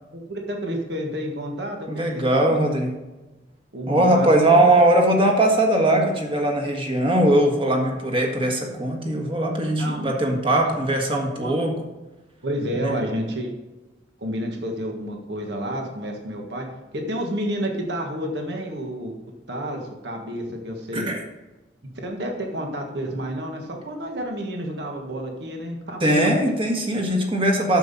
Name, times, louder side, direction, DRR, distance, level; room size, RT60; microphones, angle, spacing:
voice 1, 0.1-2.6 3.7-4.6 9.7-10.2 10.6-10.7 11.3-11.5 12.4-13.5 14.2-16.7 16.9-19.1 19.5-21.1 22.0-26.3, equal, 65° right, 2 dB, 1.5 m, -30 dB
voice 2, 1.9-2.9 3.9-11.7 12.8-13.0 20.9-21.2 26.0-27.8, right 1 dB, 30° right, 2 dB, 1.6 m, -20 dB
9.1 x 7.3 x 4.1 m, 1.1 s
head